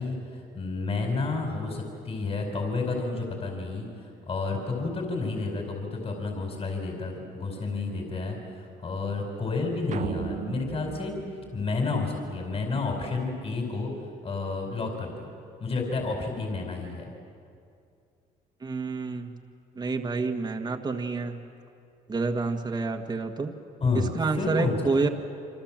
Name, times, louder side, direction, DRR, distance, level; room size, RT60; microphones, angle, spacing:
voice 1, 0.0-11.2 11.5-13.9 14.2-15.2 15.6-17.1 23.8-24.9, left 3 dB, 35° left, 2 dB, 4.8 m, -30 dB
sound 1, 9.9-12.4, right 8 dB, 45° right, 1.0 m, -37 dB
voice 2, 18.6-19.4 19.8-21.4 22.1-23.5 23.9-25.1, right 4 dB, 25° right, 2 dB, 1.7 m, -28 dB
28.5 x 25.5 x 7.6 m, 2.5 s
cardioid pair, 110°, 17 cm